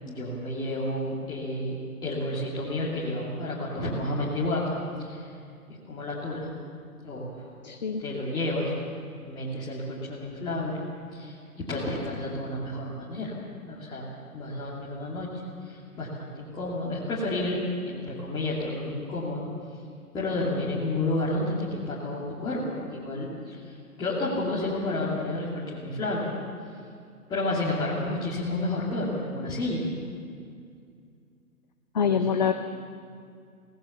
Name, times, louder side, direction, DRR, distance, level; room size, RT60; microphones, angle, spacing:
voice 1, 0.0-5.3 5.9-6.5 7.0-7.4 8.0-8.7 9.3-10.8 11.1-13.3 13.7-14.1 14.3-15.3 15.6-19.5 20.1-26.3 27.3-29.9 32.0-32.5, left 1 dB, 10° left, -8 dB, 2.6 m, -31 dB
voice 2, 7.6-8.0 31.9-32.5, left 7 dB, 30° left, 7 dB, 0.6 m, -24 dB
23.0 x 18.0 x 7.0 m, 2.3 s
figure-of-eight pair, 135°, 45 cm